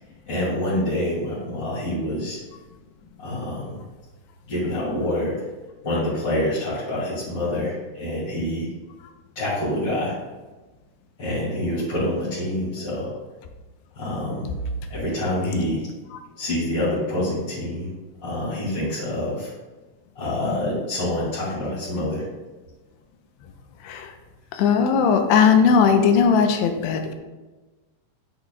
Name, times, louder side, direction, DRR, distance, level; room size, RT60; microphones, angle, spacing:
voice 1, 0.3-2.4 3.2-3.7 4.5-5.4 5.8-8.7 9.3-10.1 11.2-13.1 13.9-14.5 14.9-15.8 16.4-17.9 18.2-19.5 20.1-22.2, left 1 dB, 30° left, -11 dB, 2.7 m, -26 dB
voice 2, 24.5-27.1, left 6 dB, 80° left, 5 dB, 2.8 m, -18 dB
9.9 x 8.7 x 2.3 m, 1.2 s
omnidirectional pair, 5.1 m